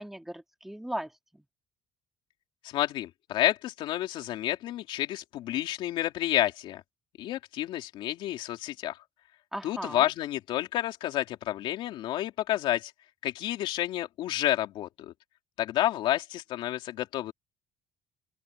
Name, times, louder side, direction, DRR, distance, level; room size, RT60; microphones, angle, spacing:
voice 1, 0.0-1.5 9.5-10.1, right 1 dB, 5° right, 2.6 m, -38 dB
voice 2, 2.6-6.8 7.2-9.0 9.6-12.9 13.2-15.1 15.6-17.3, left 13 dB, 65° left, 3.1 m, -30 dB
open air
cardioid pair, 150°, 9 cm